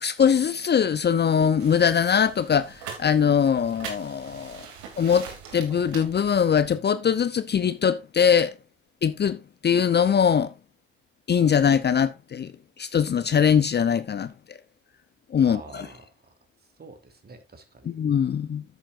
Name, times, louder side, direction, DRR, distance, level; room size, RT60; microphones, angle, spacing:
voice 1, 0.0-4.7 5.0-8.5 9.0-10.5 11.3-12.5 12.8-14.6 15.3-15.9 17.8-18.6, left 7 dB, 35° left, 0.7 m, -22 dB
sound 1, 1.6-6.8, right 6 dB, 75° right, 2.9 m, -42 dB
voice 2, 15.4-16.3 16.8-17.9, right 3 dB, 35° right, 3.0 m, -46 dB
10.5 x 8.9 x 2.6 m
hypercardioid pair, 55°, 30 cm